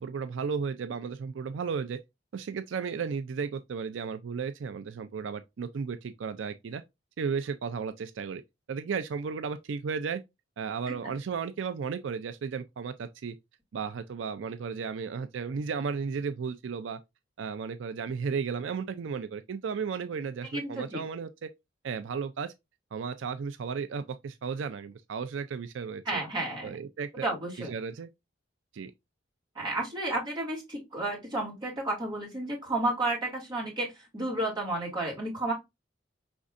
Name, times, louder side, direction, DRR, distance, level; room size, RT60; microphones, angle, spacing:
voice 1, 0.0-2.0 2.3-6.8 7.2-8.4 8.7-10.2 10.6-13.4 13.7-17.0 17.4-21.5 21.8-22.5 22.9-26.2 26.6-27.2 27.6-28.1 28.7-28.9, right 5 dB, 85° right, 0.4 m, -34 dB
voice 2, 20.5-21.0 26.1-26.7 27.2-27.7 29.6-35.5, right 2 dB, 25° right, 2.4 m, -32 dB
5.2 x 3.5 x 2.4 m
head